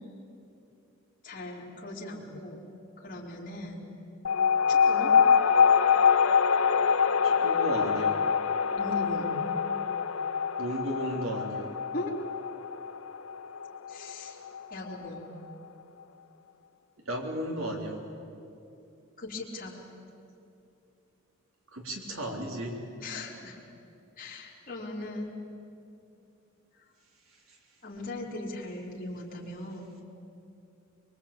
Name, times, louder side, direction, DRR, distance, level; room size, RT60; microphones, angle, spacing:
voice 1, 1.2-2.6 3.0-3.9 4.7-5.1 8.8-9.3 11.9-12.1 13.9-14.4 14.7-15.2 19.2-19.8 23.0-23.6 24.2-25.3 27.8-29.9, left 2 dB, 40° left, -5 dB, 3.8 m, -39 dB
sound 1, 4.2-15.2, left 6 dB, 80° left, 0.9 m, -25 dB
voice 2, 7.2-8.2 10.6-11.7 17.1-18.0 21.7-22.8, equal, 75° right, 1 dB, 3.8 m, -34 dB
23.5 x 23.0 x 8.8 m, 2.7 s
head